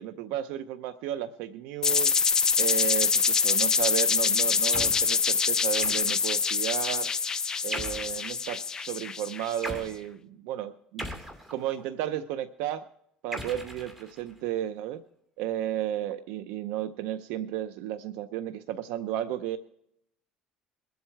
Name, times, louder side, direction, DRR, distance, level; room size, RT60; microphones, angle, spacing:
voice 1, 0.0-2.1 2.6-7.1 7.6-11.1 11.5-12.9 13.2-15.0 15.4-19.6, right 11 dB, 85° right, 11 dB, 0.6 m, -33 dB
sound 1, 1.8-9.6, left 5 dB, 25° left, 0.6 m, -25 dB
sound 2, 4.7-5.1 5.8-6.4 7.7-8.2 9.6-9.9 11.0-11.9 13.3-14.4, equal, 5° right, 2.3 m, -38 dB
22.0 x 8.0 x 4.5 m, 0.74 s
cardioid pair, 120°, 3 cm